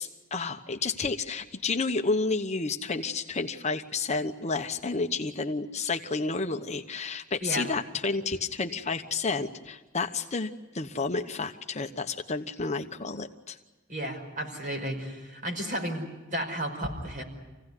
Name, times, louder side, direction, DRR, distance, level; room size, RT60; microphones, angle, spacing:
voice 1, 0.0-10.5 10.7-13.6, left 4 dB, 35° left, 6 dB, 1.0 m, -30 dB
voice 2, 13.9-17.2, equal, 40° right, 3 dB, 5.6 m, -33 dB
27.0 x 17.0 x 9.8 m, 1.2 s
head